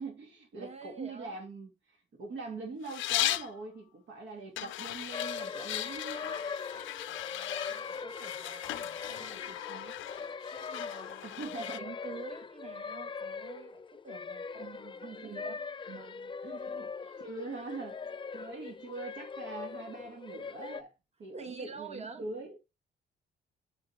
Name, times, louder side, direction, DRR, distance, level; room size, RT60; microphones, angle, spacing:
voice 1, 0.0-6.3 11.2-11.9 14.6-15.4 16.4-16.9 17.2-20.9 21.2-22.6, right 3 dB, 70° right, 2.2 m, -43 dB
voice 2, 0.5-1.4 7.1-11.2 11.6-15.6 15.9-16.6 17.0-17.2 21.3-22.2, right 5 dB, 30° right, 1.6 m, -49 dB
sound 1, 2.8-3.5 4.6-11.8, left 14 dB, 75° left, 0.5 m, -37 dB
sound 2, 5.1-20.8, left 5 dB, 25° left, 0.4 m, -41 dB
7.0 x 6.6 x 3.4 m
cardioid pair, 90°, 20 cm